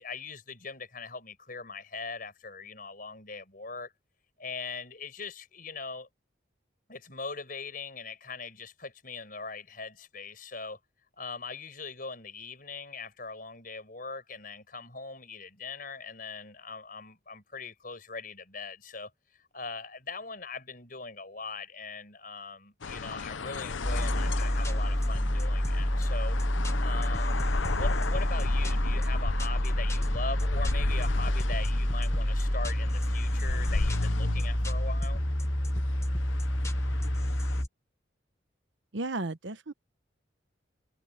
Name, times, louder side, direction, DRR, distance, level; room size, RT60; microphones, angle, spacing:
voice 1, 0.0-3.9 4.4-6.1 6.9-10.8 11.2-19.1 19.5-26.4 26.8-35.2, left 4 dB, 45° left, 5.5 m, -41 dB
sound 1, 22.8-37.6, left 4 dB, 80° left, 0.8 m, -36 dB
sound 2, 23.8-37.7, equal, 15° left, 1.0 m, -28 dB
voice 2, 38.9-39.7, right 2 dB, 75° right, 1.1 m, -34 dB
head